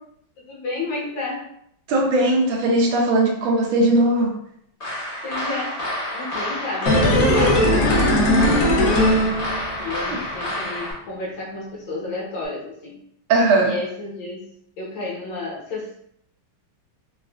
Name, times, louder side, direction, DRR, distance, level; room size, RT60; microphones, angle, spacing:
voice 1, 0.4-1.5 5.2-5.8 6.1-9.4 9.8-13.0 13.6-14.4 14.8-15.9, left 2 dB, 65° left, -5 dB, 1.6 m, -32 dB
voice 2, 1.9-4.4 13.3-13.8, right 2 dB, 75° right, 0 dB, 1.5 m, -18 dB
sound 1, 4.8-10.9, left 1 dB, 40° left, 0.5 m, -29 dB
sound 2, 6.9-10.0 10.3-10.4, left 1 dB, 90° left, 0.7 m, -18 dB
4.1 x 2.3 x 2.2 m, 0.72 s
omnidirectional pair, 2.3 m